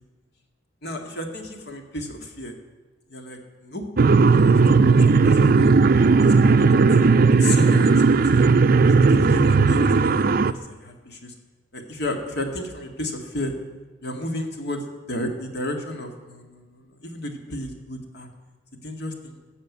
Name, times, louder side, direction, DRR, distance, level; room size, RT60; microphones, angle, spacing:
voice 1, 0.8-2.6 3.1-3.9 4.1-4.5 4.9-5.7 6.2-6.6 7.4-8.5 8.9-11.3 11.7-13.5 14.0-18.3 18.7-19.4, left 1 dB, 60° left, 4 dB, 1.9 m, -33 dB
sound 1, 4.0-10.5, right 4 dB, 50° right, 0.5 m, -16 dB
14.5 x 6.8 x 9.4 m, 1.3 s
head